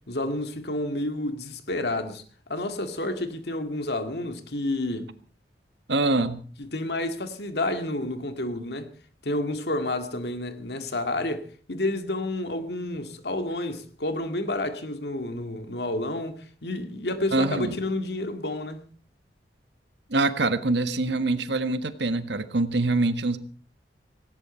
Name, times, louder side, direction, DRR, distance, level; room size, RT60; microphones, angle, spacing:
voice 1, 0.1-2.2 2.5-5.1 6.6-8.9 9.2-18.8, left 1 dB, 65° left, 2.1 m, -30 dB
voice 2, 5.9-6.4 17.3-17.8 20.1-23.4, right 2 dB, 75° right, 1.5 m, -24 dB
18.0 x 17.5 x 4.4 m
head